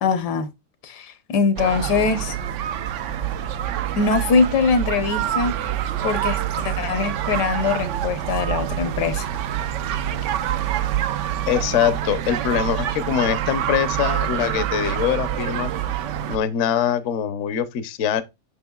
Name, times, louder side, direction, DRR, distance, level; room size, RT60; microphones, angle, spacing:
voice 1, 0.0-0.5 0.8-2.4 4.0-5.6 6.0-9.3, left 4 dB, 75° left, 1.4 m, -22 dB
sound 1, 1.6-16.4, right 11 dB, 75° right, 0.7 m, -26 dB
voice 2, 11.5-15.7 16.3-18.2, left 9 dB, 60° left, 0.9 m, -23 dB
7.2 x 5.9 x 2.3 m
omnidirectional pair, 1.8 m